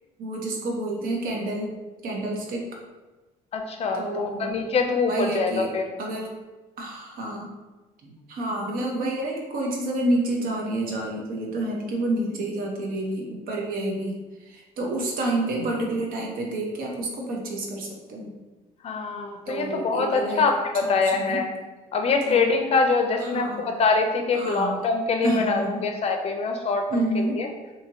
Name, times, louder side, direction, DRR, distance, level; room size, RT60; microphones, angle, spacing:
voice 1, 0.2-1.7 2.0-2.7 3.9-4.5 5.1-5.7 6.0-6.3 6.8-7.5 8.0-14.2 14.5-18.3 19.5-20.5 20.8-21.4 22.3-22.4 23.2-23.7 24.3-24.8 25.2-25.9 26.9-27.4, right 1 dB, 70° right, -1 dB, 0.7 m, -29 dB
voice 2, 3.5-5.8 18.8-21.5 21.9-27.5, left 4 dB, 40° left, 4 dB, 0.4 m, -24 dB
2.7 x 2.5 x 2.8 m, 1.2 s
cardioid pair, 100°, 15 cm